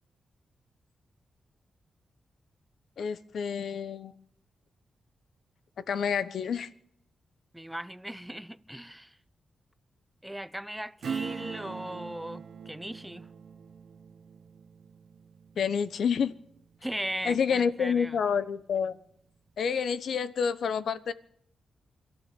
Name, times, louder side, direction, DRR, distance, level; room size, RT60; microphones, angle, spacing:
voice 1, 3.0-4.1 5.9-6.7 15.6-16.3 17.2-19.0 19.6-21.1, left 6 dB, 75° left, 1.0 m, -28 dB
voice 2, 7.5-9.2 10.2-13.3 16.8-18.2, equal, 5° right, 0.9 m, -38 dB
Acoustic guitar / Strum, 11.0-17.2 17.6-17.7, right 6 dB, 70° right, 1.1 m, -42 dB
23.0 x 13.5 x 9.2 m
cardioid pair, 70°, 0 cm